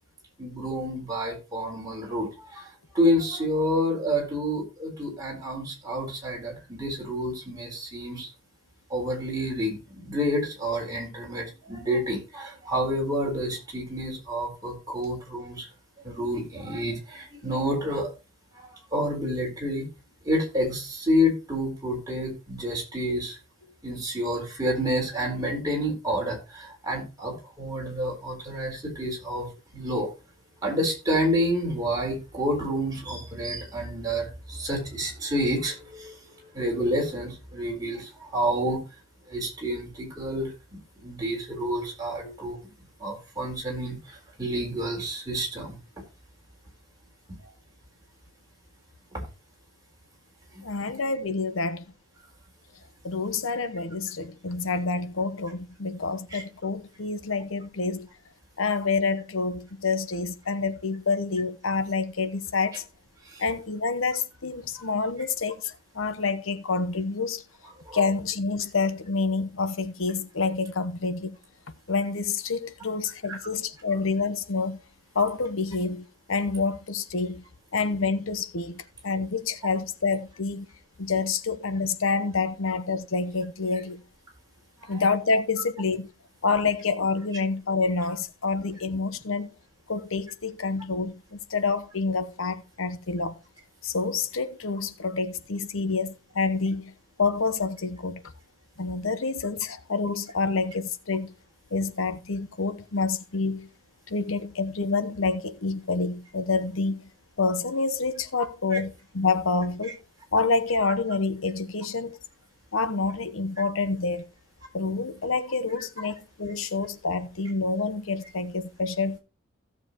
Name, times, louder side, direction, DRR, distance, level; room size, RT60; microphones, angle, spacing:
voice 1, 0.4-2.7 2.9-8.3 8.9-15.7 16.0-18.1 18.9-19.9 20.2-23.4 23.8-30.1 30.6-36.1 36.5-38.8 39.3-42.7 43.0-45.8 49.1-49.2 50.5-50.6 56.3-56.4 63.3-63.4 67.9-68.0 73.3-73.4 84.9-85.0 108.7-108.8, equal, 20° right, 4.2 m, -29 dB
voice 2, 50.6-51.8 53.0-58.1 58.6-62.8 63.4-67.4 67.9-71.4 71.9-74.8 75.1-77.4 77.7-80.7 81.0-84.0 84.9-86.1 86.4-89.5 89.9-93.4 93.8-96.9 97.2-98.2 98.8-101.3 101.7-103.7 104.1-107.1 107.4-110.0 110.3-112.2 112.7-114.3 114.7-119.2, left 4 dB, 85° left, 0.9 m, -27 dB
16.0 x 7.0 x 3.0 m
head